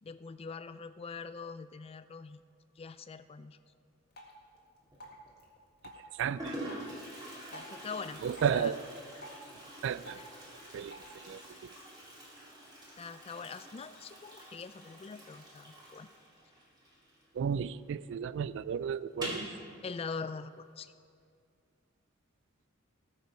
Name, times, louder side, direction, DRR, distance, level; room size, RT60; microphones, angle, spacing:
voice 1, 0.0-2.4 2.8-3.6 7.5-8.2 8.5-8.7 10.1-10.3 13.0-16.1 19.8-20.9, left 5 dB, 30° left, 13 dB, 0.3 m, -43 dB
Drip, 4.1-11.1, equal, 50° left, 1.8 m, -54 dB
Toilet flush, 4.8-5.3 6.0-6.1 6.3-17.6 17.9-18.0 18.3-18.4 19.1-19.6, right 1 dB, 20° right, 2.6 m, -46 dB
voice 2, 6.1-6.6 8.2-8.8 9.8-10.2 10.7-11.7 17.3-19.4, right 7 dB, 60° right, 17 dB, 0.3 m, -33 dB
18.0 x 6.7 x 4.8 m, 2.3 s
head